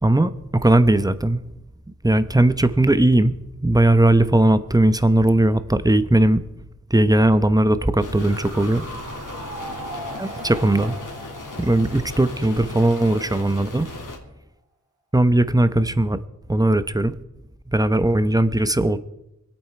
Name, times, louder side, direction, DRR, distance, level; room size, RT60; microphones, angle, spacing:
voice 1, 0.0-1.4 2.0-3.3 3.6-6.4 6.9-8.8 10.2-11.0 11.6-13.9 15.1-16.2 16.5-17.2 17.7-19.0, right 1 dB, 10° right, 12 dB, 0.9 m, -18 dB
sound 1, 8.0-14.2, left 3 dB, 75° left, 3.0 m, -37 dB
sound 2, 8.1-13.3 13.6-13.7, right 1 dB, 55° right, 4.7 m, -38 dB
24.5 x 8.9 x 4.6 m, 0.89 s
cardioid pair, 45°, 31 cm